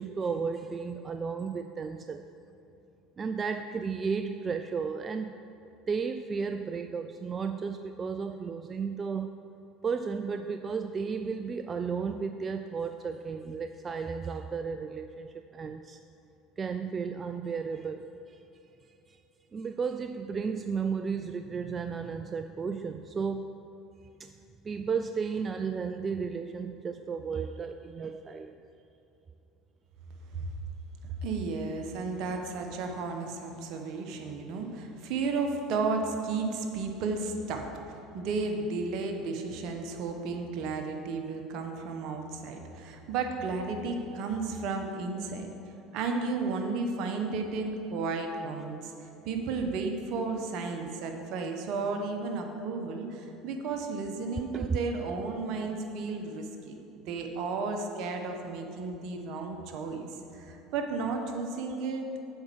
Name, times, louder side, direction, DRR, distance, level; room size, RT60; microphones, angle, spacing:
voice 1, 0.0-2.2 3.2-5.4 5.9-9.4 9.8-16.0 16.6-18.4 19.1-19.2 19.5-23.5 24.2-24.3 24.6-28.5 54.5-54.8, right 5 dB, 30° right, 8 dB, 0.4 m, -33 dB
voice 2, 31.0-45.5 45.9-60.0 60.3-62.0, right 4 dB, 60° right, 4 dB, 1.2 m, -33 dB
7.8 x 5.4 x 7.3 m, 2.9 s
hypercardioid pair, 80°, 0 cm